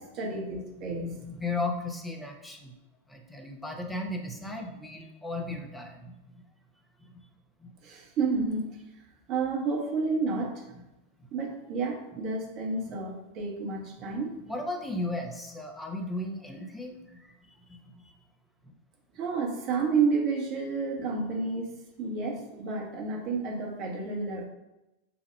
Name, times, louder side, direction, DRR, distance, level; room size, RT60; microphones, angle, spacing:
voice 1, 0.0-1.2 7.8-8.7 9.3-10.6 11.3-14.4 19.2-24.5, right 4 dB, 40° right, -1 dB, 1.4 m, -30 dB
voice 2, 0.9-2.7 3.1-6.4 7.1-7.2 7.6-7.7 14.5-18.2, left 2 dB, 5° left, 2 dB, 1.0 m, -36 dB
7.9 x 2.8 x 5.3 m, 0.95 s
figure-of-eight pair, 90°, 0 cm